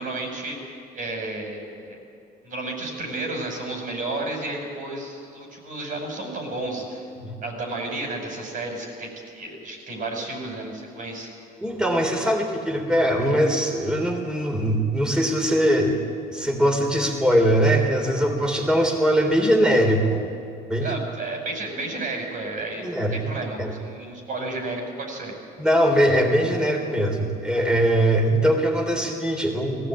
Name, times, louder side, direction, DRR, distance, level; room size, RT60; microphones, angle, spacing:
voice 1, 0.0-2.0 2.4-7.1 7.4-11.3 20.8-25.4, right 2 dB, 55° right, 1 dB, 5.9 m, -32 dB
voice 2, 11.6-16.0 16.3-20.2 20.7-20.9 22.8-23.2 23.6-23.7 25.6-29.9, equal, 5° right, 2 dB, 3.5 m, -21 dB
18.5 x 16.0 x 8.7 m, 2.5 s
cardioid pair, 110°, 17 cm